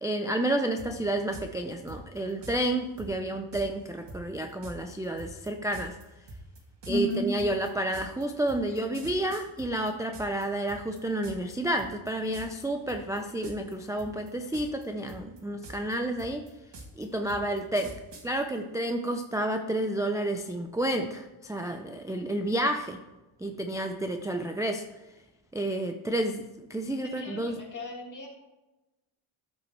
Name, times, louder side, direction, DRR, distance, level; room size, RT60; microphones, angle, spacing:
voice 1, 0.0-6.0 6.9-16.5 17.0-17.9 18.2-23.0 23.4-24.9 25.5-27.6, right 1 dB, 5° right, 5 dB, 0.4 m, -30 dB
sound 1, 0.8-0.9 1.3-1.5 1.9-2.6 3.0-3.1 3.5-3.7 4.1-10.4 10.7-11.5 11.8-12.1 12.3-12.6 12.9-13.7 14.0-14.8 15.1-18.3, right 2 dB, 60° right, 1.8 m, -44 dB
voice 2, 6.9-7.3 27.0-27.4 27.7-28.3, left 1 dB, 40° left, -2 dB, 2.4 m, -33 dB
13.0 x 5.5 x 4.5 m, 1.0 s
wide cardioid pair, 170°, 48 cm